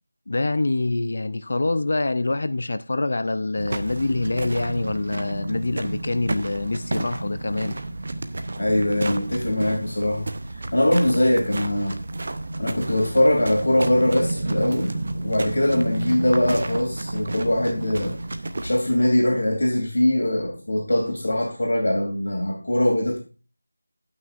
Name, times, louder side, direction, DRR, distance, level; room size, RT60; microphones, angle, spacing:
voice 1, 0.3-7.8, left 2 dB, 35° left, 0.4 m, -25 dB
sound 1, 3.6-18.8, right 2 dB, 30° right, 0.6 m, -31 dB
voice 2, 8.6-10.3 10.7-12.0 12.6-14.9 15.2-18.2 18.6-23.2, left 1 dB, 55° left, 2.9 m, -22 dB
17.0 x 6.0 x 2.5 m
figure-of-eight pair, 180°, 0 cm